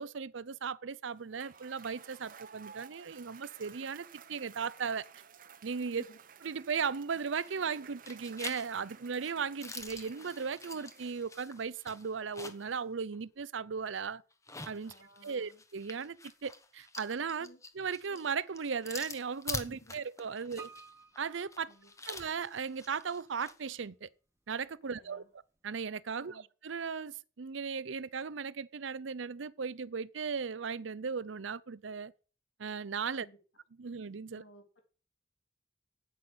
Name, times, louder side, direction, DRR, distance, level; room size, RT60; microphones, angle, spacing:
voice 1, 0.0-5.0 5.6-6.0 6.4-14.2 14.6-14.9 15.2-16.2 16.4-17.5 17.7-20.7 21.2-21.7 22.1-24.1 24.5-25.2 25.6-32.1 32.6-33.3 33.8-34.4, right 6 dB, 80° right, 0.6 m, -37 dB
Cheering / Applause / Crowd, 1.2-11.6, right 7 dB, 45° right, 0.9 m, -55 dB
sound 1, 7.3-7.7 8.1-12.8 13.1-13.2 14.3-23.6, left 3 dB, 15° left, 1.3 m, -46 dB
voice 2, 14.8-15.6 17.4-17.6 19.7-19.9 21.7-21.9 24.8-25.3 26.2-26.5 33.2-33.4 34.3-34.8, equal, 90° left, 3.6 m, -57 dB
Piano, 20.6-22.6 22.9-23.0, right 5 dB, 15° right, 1.2 m, -53 dB
9.4 x 8.4 x 8.0 m
head